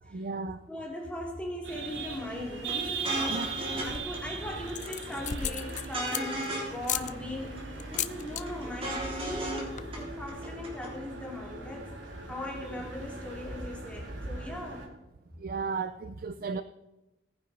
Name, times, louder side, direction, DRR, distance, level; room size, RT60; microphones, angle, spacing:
voice 1, 0.0-0.7 3.3-3.5 5.7-5.8 12.7-12.8 15.4-16.6, right 4 dB, 50° right, 11 dB, 0.5 m, -35 dB
voice 2, 0.7-3.4 3.8-14.9, left 1 dB, 5° left, -1 dB, 2.6 m, -39 dB
sound 1, 1.6-14.9, right 3 dB, 75° right, 2.4 m, -39 dB
sound 2, 2.7-2.8 3.0-3.9 4.1-4.2 4.5-5.1 5.4-6.8 7.0-7.1 7.4-8.0 8.3-9.6 9.9-10.0 10.3-10.9, right 1 dB, 30° right, 3.2 m, -35 dB
sound 3, 3.7-4.2 4.7-6.5 6.8-7.1 7.8-8.4 8.7-9.0 9.3-9.4 9.6-10.0, left 10 dB, 40° left, 0.5 m, -35 dB
17.5 x 10.0 x 4.1 m, 1.0 s
head